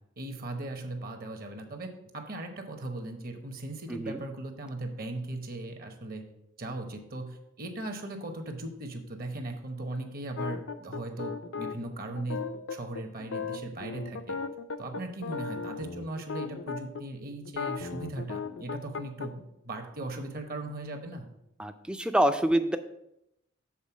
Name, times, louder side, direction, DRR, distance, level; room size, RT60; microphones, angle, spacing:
voice 1, 0.2-6.2 6.6-14.4 14.8-21.3, right 2 dB, 45° right, 5 dB, 1.0 m, -38 dB
voice 2, 3.9-4.2 21.6-22.8, right 1 dB, 5° right, 9 dB, 0.4 m, -26 dB
sound 1, 10.4-17.0 17.5-19.3, left 5 dB, 65° left, 0.5 m, -36 dB
7.4 x 3.9 x 5.9 m, 0.82 s
head